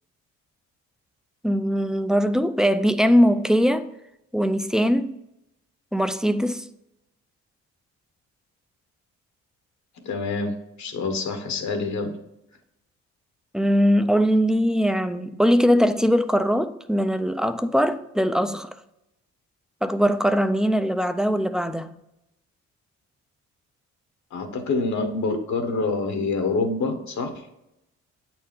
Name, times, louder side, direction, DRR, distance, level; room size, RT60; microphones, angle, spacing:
voice 1, 1.4-3.9 4.3-5.2 5.9-6.7 13.5-18.7 19.8-21.9, equal, ahead, 0.4 m, -21 dB
voice 2, 10.0-12.1 24.3-27.3, left 3 dB, 65° left, 1.3 m, -26 dB
8.3 x 4.5 x 3.8 m
cardioid pair, 90°, 30 cm